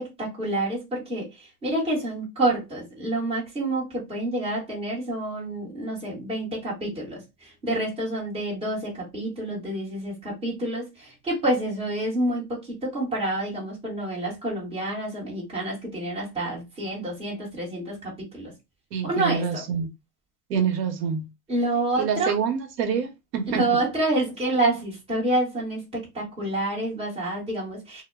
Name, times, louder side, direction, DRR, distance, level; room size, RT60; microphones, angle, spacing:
voice 1, 0.0-18.5 19.0-19.6 21.5-22.3 23.5-28.0, right 1 dB, 10° right, 1.1 m, -28 dB
voice 2, 18.9-19.9 20.5-21.3 22.0-23.6, right 7 dB, 75° right, 0.9 m, -26 dB
2.1 x 2.1 x 3.3 m
supercardioid pair, 165°, 50 cm